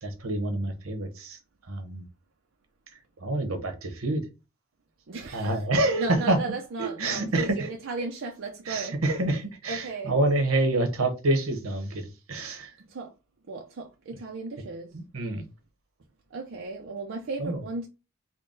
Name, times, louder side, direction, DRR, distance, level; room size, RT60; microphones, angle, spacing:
voice 1, 0.0-1.4 1.7-2.0 3.2-4.2 5.3-6.4 6.8-7.7 8.7-12.7 15.1-15.4 17.4-17.6, right 2 dB, 80° right, 1.0 m, -27 dB
voice 2, 5.1-5.7 6.0-9.0 9.7-10.1 12.9-13.1 13.5-14.9 16.3-17.9, right 3 dB, 65° right, 0.5 m, -35 dB
3.7 x 2.2 x 3.8 m
head